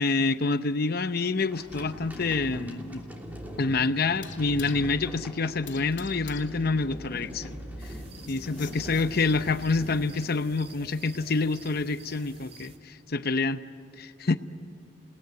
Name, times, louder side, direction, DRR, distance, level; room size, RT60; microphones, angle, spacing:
voice 1, 0.0-3.0 3.6-7.9 8.3-13.6 14.0-14.4, left 3 dB, 55° left, 11 dB, 0.8 m, -27 dB
sound 1, 1.5-10.9, equal, 10° right, 2.9 m, -41 dB
sound 2, 1.7-9.6, left 9 dB, 75° left, 2.5 m, -50 dB
sound 3, 7.8-12.8, right 3 dB, 35° right, 2.1 m, -50 dB
29.5 x 19.0 x 9.4 m, 2.6 s
head